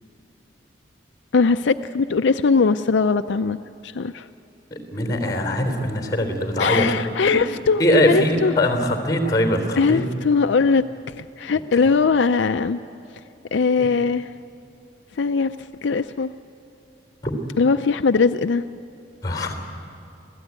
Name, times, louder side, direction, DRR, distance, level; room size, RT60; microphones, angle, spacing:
voice 1, 1.3-3.6 3.8-4.3 6.6-8.5 9.3-9.4 9.8-12.8 13.5-14.3 15.1-16.3 17.6-18.6, left 4 dB, 70° left, 9 dB, 0.5 m, -20 dB
voice 2, 4.7-6.9 7.8-10.0 13.8-13.9 17.2-17.3 19.2-19.5, left 1 dB, 20° left, 5 dB, 3.4 m, -21 dB
27.0 x 16.5 x 9.5 m, 2.7 s
head